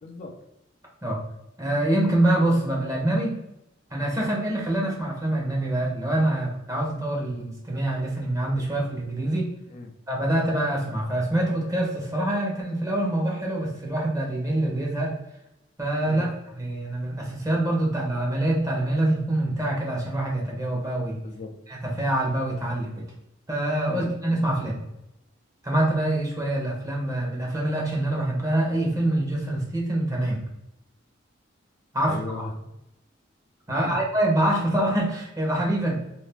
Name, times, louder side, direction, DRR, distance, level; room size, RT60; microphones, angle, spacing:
voice 1, 0.0-0.4 9.7-9.9 16.1-16.3 21.2-21.6 23.9-24.0 32.0-32.5 33.8-34.0, left 2 dB, 40° left, 3 dB, 0.3 m, -37 dB
voice 2, 1.6-3.4 3.9-9.5 10.1-15.2 15.8-21.2 21.8-23.0 23.5-24.8 25.6-30.4 31.9-32.2 33.7-35.9, right 1 dB, 20° right, -2 dB, 0.9 m, -25 dB
2.7 x 2.5 x 3.4 m, 0.86 s
head